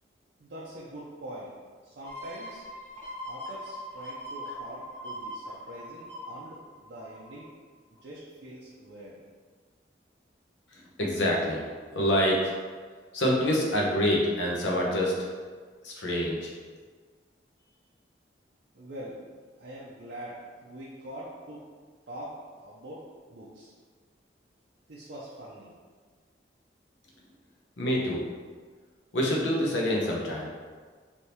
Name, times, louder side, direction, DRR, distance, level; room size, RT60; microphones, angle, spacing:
voice 1, 0.4-1.5 1.8-2.6 3.3-7.5 8.0-9.3 17.6-17.8 18.7-19.2 19.6-21.7 22.1-23.0 23.3-23.7 24.9-25.7, right 1 dB, 65° right, -7 dB, 0.5 m, -43 dB
sound 1, 2.0-7.5 8.0-8.1, equal, 10° left, 0.7 m, -41 dB
voice 2, 10.7-12.5 13.1-15.3 15.8-16.5 27.8-28.2 29.1-30.5, equal, 85° left, -2 dB, 0.7 m, -26 dB
3.4 x 2.7 x 2.8 m, 1.5 s
head